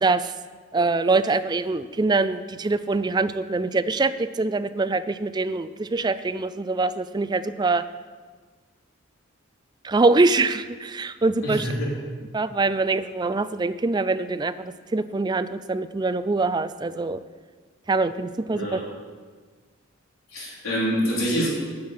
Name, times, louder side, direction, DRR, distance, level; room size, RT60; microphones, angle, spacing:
voice 1, 0.0-0.3 0.7-7.8 9.8-11.7 12.3-17.2 17.9-18.8, right 3 dB, 20° right, 12 dB, 0.3 m, -24 dB
voice 2, 11.4-11.9 18.5-18.8 20.3-21.5, equal, 85° left, -5 dB, 4.1 m, -26 dB
9.6 x 6.4 x 8.7 m, 1.5 s
head